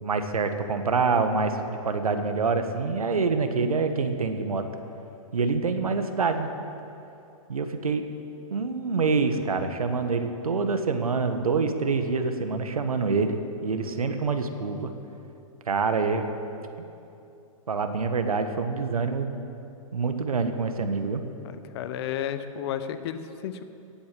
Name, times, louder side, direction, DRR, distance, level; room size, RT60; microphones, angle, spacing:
voice 1, 0.0-4.6 5.3-6.5 7.5-8.1 8.5-14.9 15.7-16.3 17.7-19.3 19.9-21.2, right 4 dB, 85° right, 7 dB, 1.5 m, -26 dB
voice 2, 21.4-23.6, left 9 dB, 45° left, 11 dB, 1.0 m, -33 dB
16.5 x 8.7 x 7.6 m, 2.7 s
hypercardioid pair, 125°, 18 cm